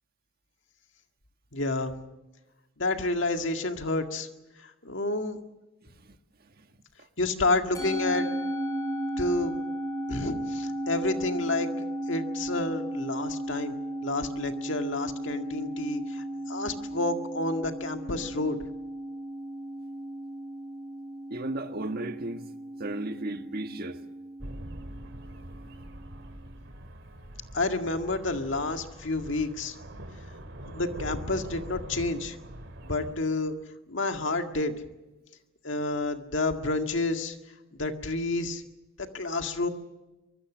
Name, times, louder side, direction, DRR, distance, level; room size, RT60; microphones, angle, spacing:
voice 1, 1.5-1.9 2.8-4.3 4.6-5.4 7.2-8.3 9.2-9.5 10.1-13.8 14.0-18.6 27.5-29.7 30.6-32.4 32.8-33.5 33.9-34.7 35.6-37.4 37.7-38.6 39.1-39.7, left 2 dB, 70° left, 2.0 m, -29 dB
Musical instrument, 7.7-26.2, right 1 dB, 20° left, 6.8 m, -35 dB
voice 2, 21.3-22.5 22.8-24.0, right 2 dB, 50° right, 1.5 m, -34 dB
sound 1, 24.4-33.1, right 1 dB, 65° right, 2.5 m, -43 dB
24.5 x 22.5 x 6.3 m
head